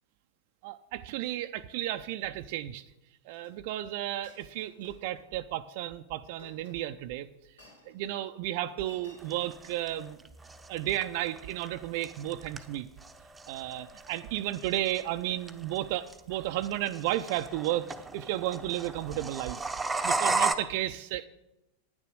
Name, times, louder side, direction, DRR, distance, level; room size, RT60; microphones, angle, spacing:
voice 1, 0.6-2.8 3.3-7.3 7.9-10.2 10.7-12.9 13.5-17.9 18.1-19.6 20.0-21.3, right 14 dB, 50° right, 9 dB, 0.4 m, -33 dB
Chink clink, 3.3-3.5 4.2-5.2 6.3-7.1 7.6-7.9 8.8-9.2, left 2 dB, 75° left, 2.8 m, -56 dB
sound 1, 9.2-20.5, right 3 dB, 10° right, 0.8 m, -35 dB
9.7 x 9.6 x 6.3 m, 0.92 s
figure-of-eight pair, 90°, 0 cm